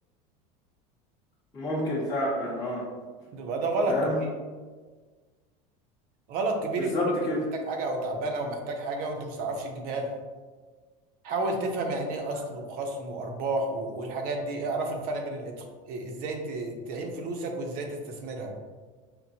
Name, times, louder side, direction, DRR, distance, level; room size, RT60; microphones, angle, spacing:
voice 1, 1.5-2.9 3.9-4.1 6.8-7.5, left 1 dB, 20° left, -7 dB, 0.7 m, -29 dB
voice 2, 3.3-4.1 6.3-7.1 7.5-10.1 11.2-18.5, right 2 dB, 55° right, 3 dB, 0.7 m, -31 dB
5.8 x 2.1 x 2.7 m, 1.4 s
supercardioid pair, 135°, 18 cm